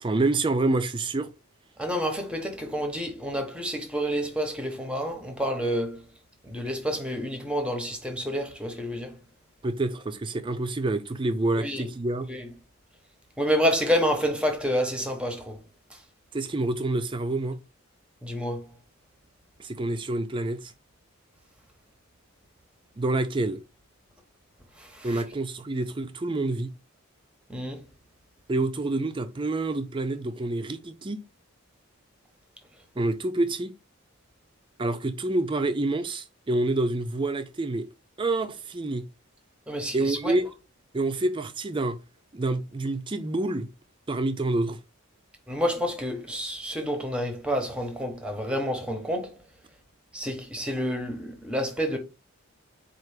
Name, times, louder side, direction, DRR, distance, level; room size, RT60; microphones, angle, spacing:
voice 1, 0.0-1.3 9.6-12.3 16.3-17.6 19.6-20.7 23.0-23.6 25.0-26.7 28.5-31.2 33.0-33.7 34.8-37.9 38.2-39.1 39.9-40.4 40.9-42.0 42.3-43.7 44.1-44.8, right 2 dB, 25° right, 0.4 m, -27 dB
voice 2, 1.8-6.0 6.4-9.1 11.5-11.9 12.3-12.4 13.4-15.6 18.2-18.6 24.8-25.2 27.5-27.8 39.7-40.4 45.5-49.3 50.1-52.0, equal, 5° right, 0.9 m, -29 dB
4.4 x 2.5 x 4.8 m
head